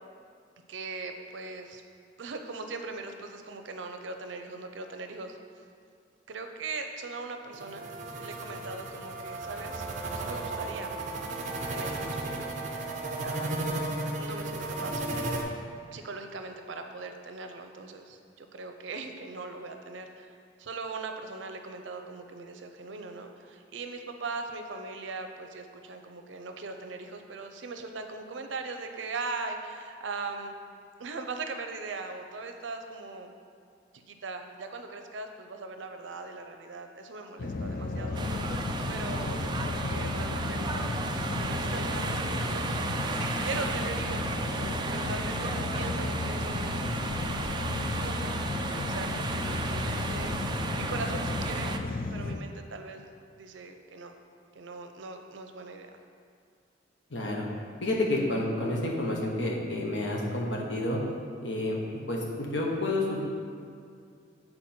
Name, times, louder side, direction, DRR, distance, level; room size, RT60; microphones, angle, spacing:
voice 1, 0.7-1.8 2.2-5.6 6.3-9.9 10.1-10.9 11.7-12.6 13.2-13.6 14.2-15.0 15.9-20.3 20.6-30.5 31.0-33.3 33.9-38.2 38.9-39.4 39.6-41.0 41.3-42.8 43.1-44.3 44.9-47.0 47.7-48.3 48.8-50.4 50.8-51.7 52.1-53.1 53.4-54.1 54.5-56.0, right 3 dB, 80° right, 6 dB, 0.6 m, -40 dB
sound 1, 7.5-15.4, right 2 dB, 40° right, 0.7 m, -34 dB
sound 2, 37.4-52.4, left 3 dB, 50° left, 0.4 m, -33 dB
sound 3, 38.1-51.8, right 3 dB, 25° right, 0.3 m, -34 dB
voice 2, 57.1-57.5 57.8-61.0 61.4-61.8 62.1-62.2 62.5-63.2, left 1 dB, 75° left, -1 dB, 1.1 m, -29 dB
7.7 x 4.3 x 4.4 m, 2.3 s
head